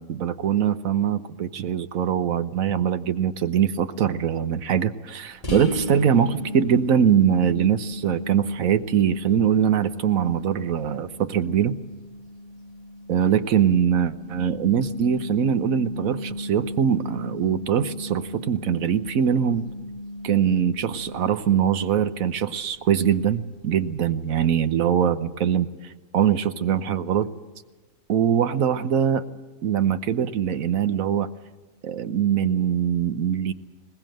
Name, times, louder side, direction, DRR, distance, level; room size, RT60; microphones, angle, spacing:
voice 1, 0.0-11.7 13.1-19.6 20.2-25.7 26.1-27.3 28.1-29.2 29.6-31.3 31.8-33.5, right 8 dB, 80° right, 11 dB, 1.3 m, -22 dB
sound 1, 5.4-22.9, left 1 dB, 25° left, 2.6 m, -36 dB
21.0 x 19.5 x 7.7 m, 1.2 s
omnidirectional pair, 1.4 m